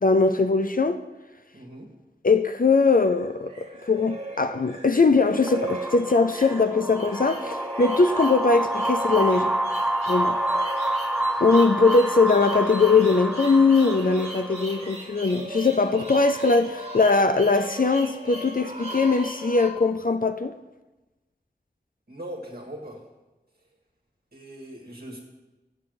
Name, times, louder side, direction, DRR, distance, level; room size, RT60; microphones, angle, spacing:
voice 1, 0.0-1.0 2.2-9.5 10.1-10.4 11.4-20.5, left 4 dB, 55° left, 0.5 m, -21 dB
voice 2, 1.5-1.9 22.1-23.0 24.3-25.2, right 1 dB, 65° right, 1.8 m, -40 dB
sound 1, 2.7-19.7, right 1 dB, 40° right, 1.9 m, -37 dB
sound 2, 5.5-14.9, right 1 dB, 5° right, 0.4 m, -28 dB
7.5 x 7.5 x 6.6 m
wide cardioid pair, 50°, 17 cm